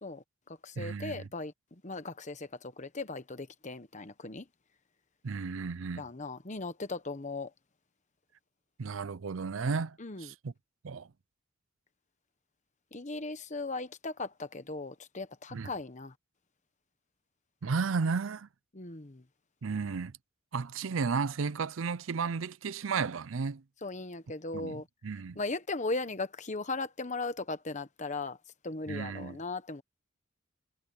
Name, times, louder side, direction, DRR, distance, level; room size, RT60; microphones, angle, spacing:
voice 1, 0.0-4.5 6.0-7.5 10.0-10.3 12.9-16.1 18.7-19.2 23.8-24.9 25.3-28.4 28.6-29.8, left 3 dB, 35° left, 1.2 m, -38 dB
voice 2, 0.8-1.3 5.2-6.1 8.8-10.5 10.8-11.1 15.5-15.7 17.6-18.5 19.6-20.1 20.5-23.6 24.5-25.4 28.9-29.4, right 5 dB, 70° right, 0.5 m, -33 dB
head